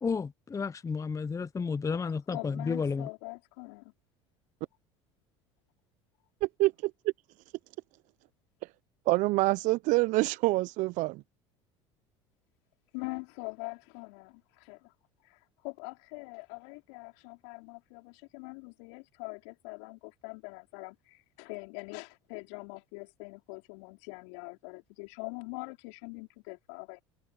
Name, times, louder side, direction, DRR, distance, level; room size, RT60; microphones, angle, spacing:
voice 1, 0.0-3.1, left 5 dB, 20° left, 0.9 m, -32 dB
voice 2, 2.3-3.8 12.9-14.9 15.2-27.0, left 35 dB, 65° left, 5.0 m, -43 dB
voice 3, 6.4-6.9 9.1-11.2, right 21 dB, 55° right, 1.0 m, -26 dB
hypercardioid pair, 70°, 15 cm